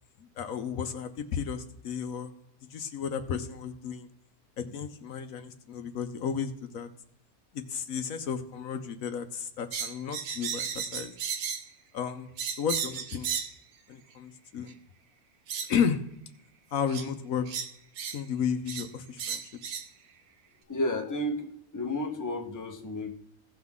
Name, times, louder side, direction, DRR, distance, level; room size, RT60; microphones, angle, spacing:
voice 1, 0.2-2.3 2.7-4.1 4.6-6.9 7.5-11.1 11.9-12.3 12.6-13.4 13.9-14.8 15.7-16.0 16.7-17.5 18.1-19.4, left 7 dB, 70° left, 8 dB, 1.1 m, -33 dB
sound 1, 9.7-11.7 12.4-13.6 14.7-14.8 15.5-15.7 16.9-17.1 17.5-18.2 18.7-18.9 19.2-19.9, right 7 dB, 85° right, 1.3 m, -34 dB
voice 2, 20.7-23.1, left 1 dB, 15° left, 3 dB, 0.9 m, -32 dB
16.5 x 6.0 x 3.6 m, 0.76 s
omnidirectional pair, 1.6 m